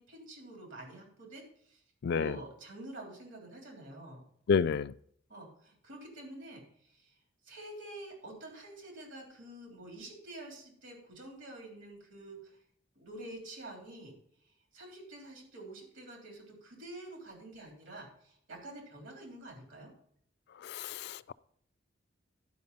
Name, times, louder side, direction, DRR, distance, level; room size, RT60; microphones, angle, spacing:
voice 1, 0.0-1.8 2.1-4.2 5.3-7.2 7.4-12.6 12.9-14.1 14.7-19.9, right 1 dB, 80° right, 3.4 m, -48 dB
voice 2, 2.0-2.3 4.5-4.9 20.6-21.3, left 6 dB, 60° left, 0.3 m, -30 dB
11.5 x 5.1 x 5.3 m
head